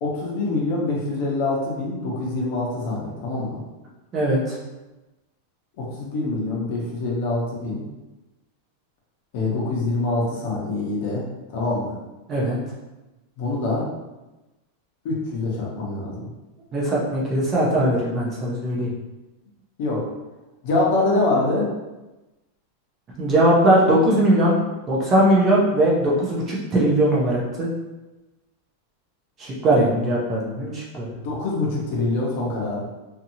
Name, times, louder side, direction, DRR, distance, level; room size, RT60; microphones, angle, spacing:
voice 1, 0.0-3.6 5.8-7.8 9.3-11.2 11.5-11.9 13.4-13.9 15.0-16.3 19.8-20.0 20.6-21.7 31.1-32.9, left 2 dB, 45° left, -3 dB, 0.8 m, -25 dB
voice 2, 4.1-4.6 12.3-12.6 16.7-18.9 23.2-24.6 24.9-27.7 29.4-31.1, right 1 dB, 20° right, -5 dB, 0.5 m, -20 dB
2.8 x 2.5 x 2.7 m, 1.1 s
supercardioid pair, 180°, 0 cm